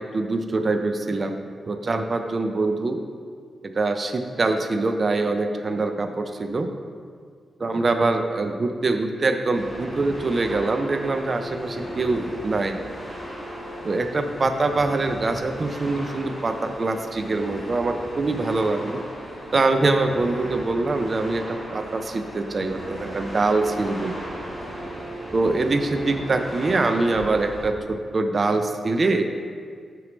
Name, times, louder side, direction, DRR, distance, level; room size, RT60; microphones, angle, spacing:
voice 1, 0.1-3.0 3.6-6.7 7.6-12.8 13.8-19.0 19.5-24.1 25.3-29.3, right 3 dB, 30° right, 7 dB, 0.3 m, -24 dB
sound 1, 9.5-27.6, right 1 dB, ahead, 1.2 m, -36 dB
6.3 x 3.1 x 5.0 m, 2.1 s
wide cardioid pair, 165°, 0 cm